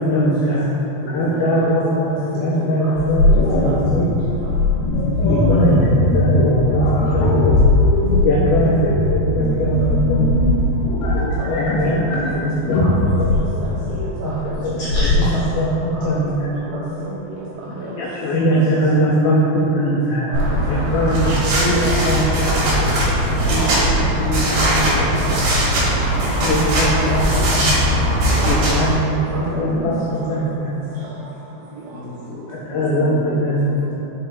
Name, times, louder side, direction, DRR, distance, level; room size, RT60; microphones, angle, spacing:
voice 1, 0.1-0.6 1.1-3.3 3.5-4.1 5.2-6.8 7.1-7.6 8.1-9.8 10.1-10.5 11.1-12.9 13.2-13.5 14.2-14.9 15.2-15.7 16.0-16.5 17.9-20.3 20.7-22.9 23.5-24.8 25.2-25.4 26.1-28.0 28.4-30.0 30.3-30.8 32.5-33.9, equal, 90° left, -5 dB, 2.1 m, -21 dB
voice 2, 1.0-2.0 2.5-2.7 7.2-7.7 8.1-8.3 13.9-14.0 14.5-15.3 17.7-17.8 18.4-18.5 18.9-19.0 22.5-23.6 24.5-24.8 28.2-28.9 29.4-30.0 31.9-32.4 32.7-34.0, left 1 dB, 55° left, -11 dB, 2.2 m, -33 dB
voice 3, 2.0-2.5 2.8-2.9 3.6-3.8 4.4-4.5 9.6-9.7 12.3-12.5 12.8-12.9 13.3-14.6 15.0-15.4 15.9-16.2 16.5-17.1 17.8-17.9 18.5-18.6 20.3-20.5 22.9-23.0 24.4-25.0 25.3-25.5 26.2-26.3 26.9-27.9 28.6-28.7 29.3-29.9 30.3-30.4, right 3 dB, 85° right, -7 dB, 2.1 m, -34 dB
sound 1, 3.0-15.2, left 2 dB, 75° left, 2.5 m, -19 dB
sound 2, 20.3-28.9, right 1 dB, 65° right, 2.6 m, -19 dB
5.4 x 4.9 x 4.6 m, 3.0 s
omnidirectional pair, 5.1 m